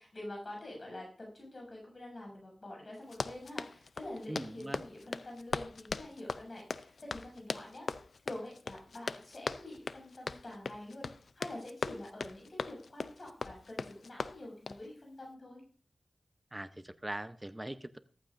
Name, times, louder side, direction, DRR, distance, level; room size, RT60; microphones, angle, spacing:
voice 1, 0.0-11.1 11.4-15.6, left 1 dB, 55° left, -1 dB, 7.3 m, -46 dB
Run, 3.0-14.9, left 4 dB, 90° left, 0.4 m, -40 dB
voice 2, 4.3-4.8 16.5-18.0, right 1 dB, 20° right, 11 dB, 0.7 m, -41 dB
14.5 x 14.5 x 2.6 m, 0.42 s
wide cardioid pair, 60°, 0 cm